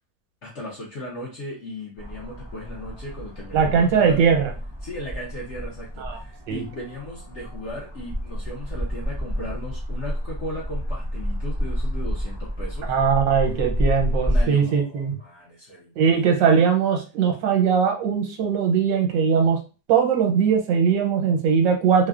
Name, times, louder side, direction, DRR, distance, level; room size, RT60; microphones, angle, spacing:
voice 1, 0.4-4.3 4.8-12.9 14.2-16.6, left 1 dB, 65° left, -4 dB, 0.7 m, -37 dB
sound 1, 2.0-14.4, equal, 10° right, 0.5 m, -29 dB
voice 2, 3.5-4.5 6.0-6.2 6.5-6.6 12.9-15.2 16.0-19.6 19.9-22.1, right 6 dB, 90° right, 3 dB, 1.4 m, -20 dB
3.4 x 2.1 x 2.3 m, 0.33 s
omnidirectional pair, 1.9 m